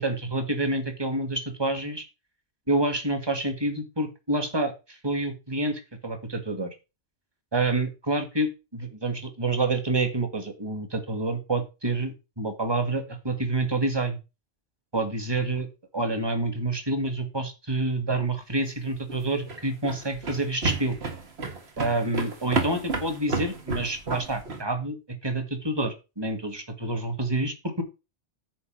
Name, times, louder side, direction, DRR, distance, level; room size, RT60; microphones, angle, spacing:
voice 1, 0.0-2.0 2.7-6.7 7.5-14.2 14.9-15.7 15.9-21.0 21.8-25.0 25.2-27.8, right 2 dB, 20° right, 7 dB, 1.7 m, -28 dB
sound 1, 19.0-24.6, right 3 dB, 60° right, 2.0 m, -31 dB
9.6 x 4.2 x 7.5 m, 0.29 s
omnidirectional pair, 1.2 m